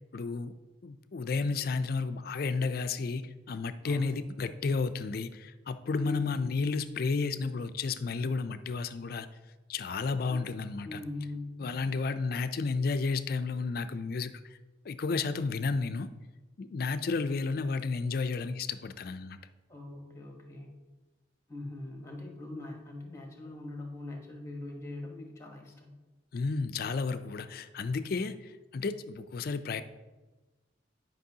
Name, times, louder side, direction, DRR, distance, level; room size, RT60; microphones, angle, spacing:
voice 1, 0.1-0.5 0.8-9.3 9.7-11.0 11.6-14.6 14.8-16.1 16.6-19.4 26.3-29.8, left 4 dB, 50° left, 12 dB, 0.4 m, -32 dB
voice 2, 3.8-4.2 6.0-6.3 10.3-10.5 10.8-11.6 19.7-20.7 21.5-25.9, left 2 dB, 15° left, 1 dB, 1.0 m, -41 dB
10.5 x 5.3 x 2.8 m, 1.2 s
head